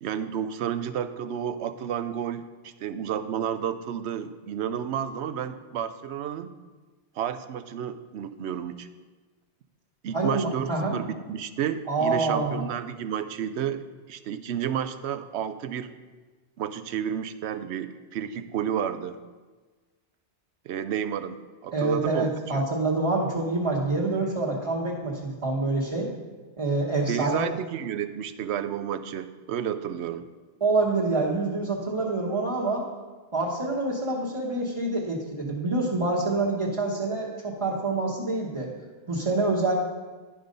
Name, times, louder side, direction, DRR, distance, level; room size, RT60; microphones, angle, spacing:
voice 1, 0.0-6.5 7.2-8.9 10.0-13.8 14.1-15.9 16.6-19.2 20.6-21.4 21.6-22.6 27.1-30.3, right 9 dB, 85° right, 11 dB, 0.9 m, -31 dB
voice 2, 10.1-11.0 11.9-12.6 21.7-26.1 26.6-27.5 30.6-32.8 33.3-38.7 39.1-39.7, right 3 dB, 30° right, -5 dB, 1.2 m, -26 dB
11.0 x 5.3 x 5.2 m, 1.3 s
omnidirectional pair, 1.1 m